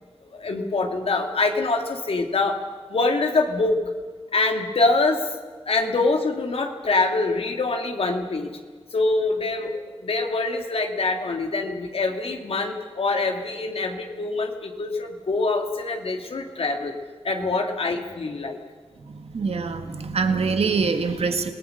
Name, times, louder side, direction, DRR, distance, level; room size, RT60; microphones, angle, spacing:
voice 1, 0.2-2.6 2.9-3.8 4.3-5.2 5.7-8.5 8.9-16.9 17.2-18.6, left 3 dB, 70° left, 3 dB, 2.8 m, -24 dB
voice 2, 19.0-21.5, right 4 dB, 80° right, 7 dB, 2.0 m, -24 dB
27.5 x 18.5 x 6.8 m, 1.5 s
wide cardioid pair, 70°, 10 cm